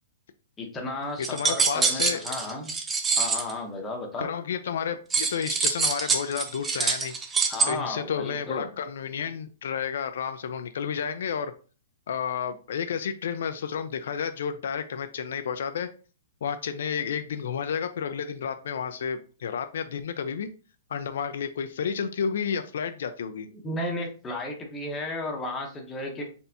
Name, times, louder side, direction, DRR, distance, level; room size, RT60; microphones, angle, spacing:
voice 1, 0.6-2.7 3.2-4.3 7.5-8.7 23.6-26.3, left 2 dB, 10° left, 1 dB, 0.8 m, -34 dB
sound 1, 1.2-3.5 5.1-7.7, right 4 dB, 10° right, 0.5 m, -25 dB
voice 2, 1.3-2.2 4.2-7.1 7.7-11.5 12.1-15.9 16.4-20.5 20.9-23.5, left 7 dB, 70° left, 9 dB, 0.4 m, -31 dB
4.2 x 3.4 x 2.7 m, 0.37 s
hypercardioid pair, 165°, 0 cm